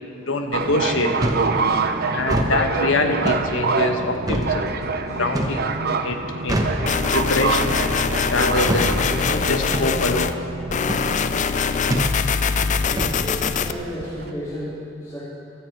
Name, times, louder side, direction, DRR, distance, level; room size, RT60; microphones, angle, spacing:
voice 1, 0.2-1.2 2.1-4.7 5.0-5.7 6.0-6.8 7.1-7.8 8.3-10.4, left 2 dB, 85° left, 5 dB, 1.2 m, -24 dB
sound 1, 0.5-14.3, right 4 dB, 55° right, 0.7 m, -26 dB
sound 2, 1.2-1.5 2.2-2.5 3.2-3.5 4.3-4.5 5.3-5.6 6.5-6.8 7.7-7.9 8.7-8.9 9.7-9.9 10.9-11.1 11.9-12.1 13.0-13.2, right 1 dB, 20° right, 1.1 m, -24 dB
sound 3, 6.9-10.3 10.7-13.7, left 5 dB, 40° left, 0.5 m, -23 dB
voice 2, 12.8-15.3, equal, 15° left, -12 dB, 3.7 m, -33 dB
15.5 x 13.0 x 4.7 m, 2.6 s
head